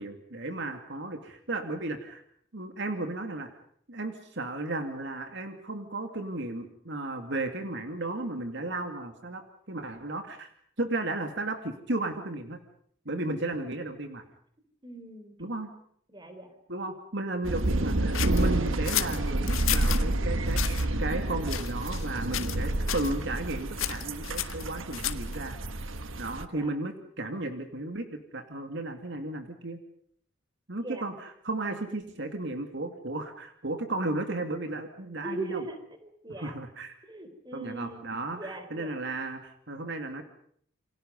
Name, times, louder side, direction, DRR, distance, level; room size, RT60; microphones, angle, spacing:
voice 1, 0.0-2.2 2.5-3.5 3.9-9.4 9.7-10.5 10.8-12.6 13.1-14.2 15.4-15.7 16.7-25.6 26.2-29.8 30.7-35.6 36.4-37.0 37.5-40.2, right 2 dB, 60° right, 6 dB, 2.5 m, -34 dB
voice 2, 14.8-15.4 16.1-16.5 26.5-26.7 30.8-31.0 35.2-36.5 37.1-38.1 38.3-38.9, right 2 dB, 20° right, 8 dB, 4.0 m, -40 dB
sound 1, 17.4-26.4, right 1 dB, 75° right, 1.5 m, -29 dB
sound 2, 18.1-20.0 20.5-20.9 21.5-22.1 22.3-22.6 22.9-23.1 23.8-25.3, left 12 dB, 90° left, 1.7 m, -32 dB
29.0 x 25.0 x 5.4 m, 0.64 s
head